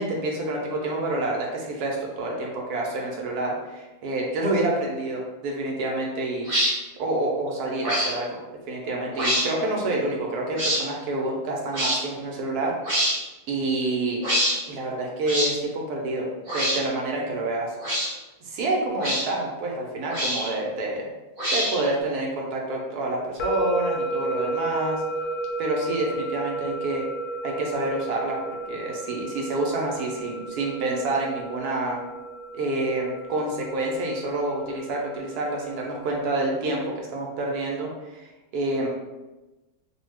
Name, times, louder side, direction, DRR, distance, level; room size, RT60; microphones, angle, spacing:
voice 1, 0.0-6.5 7.0-8.4 8.7-13.1 13.5-14.2 14.7-18.0 18.4-21.1 21.5-25.0 25.6-27.1 27.4-32.0 32.5-38.2 38.5-38.9, right 2 dB, 85° right, -1 dB, 1.1 m, -28 dB
sound 1, 6.4-6.7 7.8-8.1 9.1-9.5 10.6-10.8 11.7-12.0 12.8-13.2 14.2-14.5 15.3-15.5 16.5-16.8 17.8-18.1 19.0-19.2 20.1-20.5 21.4-21.9, equal, 35° right, 0.8 m, -24 dB
sound 2, 23.4-36.4, right 2 dB, 70° left, 0.9 m, -33 dB
2.7 x 2.2 x 3.2 m, 1.1 s
omnidirectional pair, 1.6 m